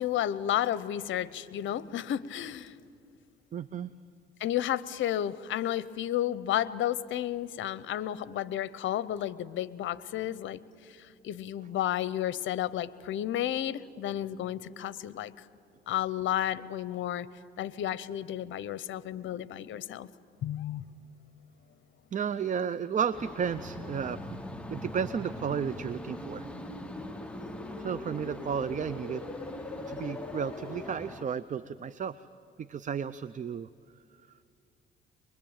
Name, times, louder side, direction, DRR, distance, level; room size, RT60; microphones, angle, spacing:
voice 1, 0.0-2.7 4.4-10.6 11.0-15.5 15.9-17.3 17.6-20.1 20.4-20.8, left 11 dB, 75° left, 17 dB, 0.8 m, -32 dB
voice 2, 3.5-3.9 22.1-24.4 24.7-26.5 27.8-29.2 29.9-32.3 32.6-33.7, right 7 dB, 40° right, 15 dB, 0.6 m, -33 dB
sound 1, 23.1-31.2, left 1 dB, 5° left, 1.2 m, -44 dB
sound 2, 23.6-31.0, left 2 dB, 25° left, 3.8 m, -42 dB
24.0 x 21.5 x 8.8 m, 2.3 s
cardioid pair, 90°, 20 cm